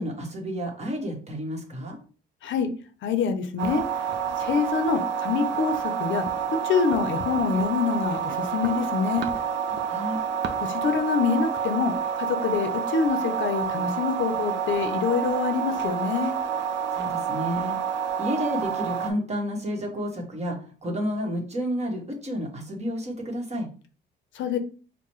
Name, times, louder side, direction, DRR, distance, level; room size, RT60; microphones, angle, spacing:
voice 1, 0.0-2.0 9.7-10.2 16.9-23.7, equal, 35° right, 0 dB, 1.3 m, -31 dB
voice 2, 3.0-3.8 4.4-6.2 6.6-9.3 10.6-16.3 24.3-24.6, left 6 dB, 75° left, 8 dB, 0.6 m, -26 dB
sound 1, 3.6-19.1, right 7 dB, 65° right, 0.5 m, -28 dB
4.6 x 2.1 x 3.1 m, 0.39 s
cardioid pair, 90°, 20 cm